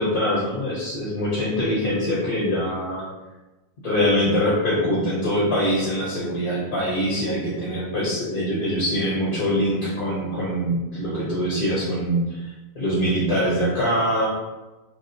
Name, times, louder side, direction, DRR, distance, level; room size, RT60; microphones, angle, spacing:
voice 1, 0.0-3.0 3.8-12.5 12.7-14.3, equal, 55° left, -8 dB, 1.2 m, -23 dB
3.4 x 2.3 x 2.7 m, 1.1 s
omnidirectional pair, 2.2 m